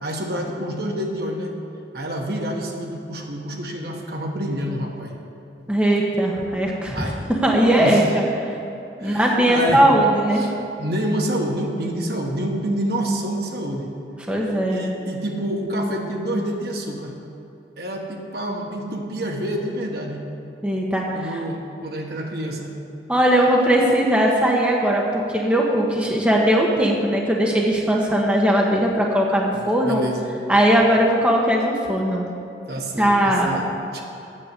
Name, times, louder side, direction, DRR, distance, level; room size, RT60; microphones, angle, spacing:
voice 1, 0.0-1.5 1.9-5.2 6.9-8.0 9.0-9.9 10.4-13.9 14.7-17.1 17.8-20.3 21.1-22.8 29.5-30.3 32.2-32.3 32.7-34.0, right 1 dB, 60° right, 1 dB, 1.2 m, -28 dB
voice 2, 5.7-7.1 7.4-8.5 9.0-10.4 14.3-14.8 20.6-21.4 23.1-30.0 30.5-32.3 33.0-33.6, right 1 dB, 5° right, -2 dB, 1.0 m, -19 dB
8.9 x 6.6 x 8.2 m, 2.8 s
head